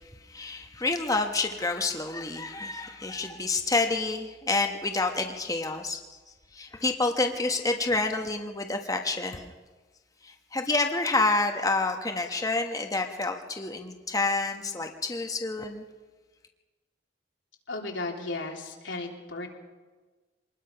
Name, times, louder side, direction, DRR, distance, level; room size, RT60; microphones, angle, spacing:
voice 1, 0.3-6.0 6.5-9.5 10.2-15.8, left 3 dB, 20° left, 4 dB, 1.1 m, -28 dB
voice 2, 17.7-19.5, left 2 dB, 90° left, 0 dB, 3.4 m, -35 dB
25.0 x 20.0 x 5.7 m, 1.3 s
head